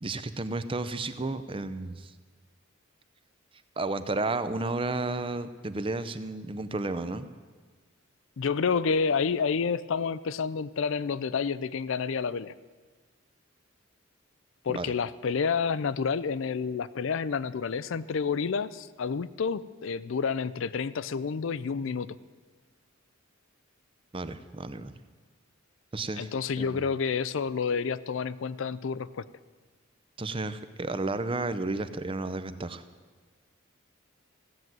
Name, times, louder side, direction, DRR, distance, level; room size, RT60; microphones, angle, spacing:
voice 1, 0.0-2.1 3.8-7.3 14.7-14.9 24.1-25.0 25.9-26.3 26.6-26.9 30.2-32.8, right 2 dB, 25° right, 11 dB, 0.6 m, -32 dB
voice 2, 8.4-12.5 14.6-22.2 26.2-29.2, left 5 dB, 65° left, 16 dB, 0.4 m, -29 dB
15.0 x 7.4 x 9.3 m, 1.4 s
head